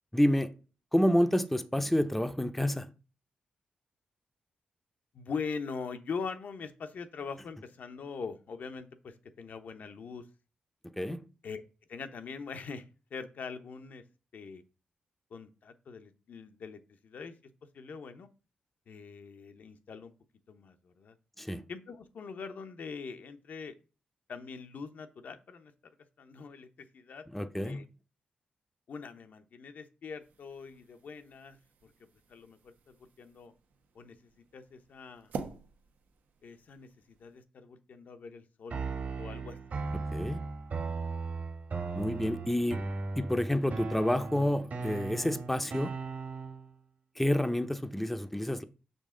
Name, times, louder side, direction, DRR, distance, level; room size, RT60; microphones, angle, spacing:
voice 1, 0.1-0.5 0.9-2.9 11.0-11.2 21.4-21.6 27.3-27.8 40.1-40.4 41.9-42.8 43.2-45.9 47.2-48.6, left 1 dB, 5° left, 0.5 m, -29 dB
voice 2, 5.1-10.3 11.4-11.6 11.9-14.0 14.3-14.6 15.3-17.4 17.7-18.3 18.9-20.1 20.5-21.2 21.7-23.7 24.3-25.7 26.2-27.8 28.9-31.6 31.8-31.9 32.3-33.5 33.9-35.3 36.4-39.6, left 5 dB, 70° left, 0.8 m, -43 dB
sound 1, 30.2-37.4, right 5 dB, 90° right, 0.9 m, -48 dB
sound 2, 38.7-46.7, right 4 dB, 60° right, 1.5 m, -37 dB
6.4 x 5.3 x 3.7 m
cardioid pair, 95°, 3 cm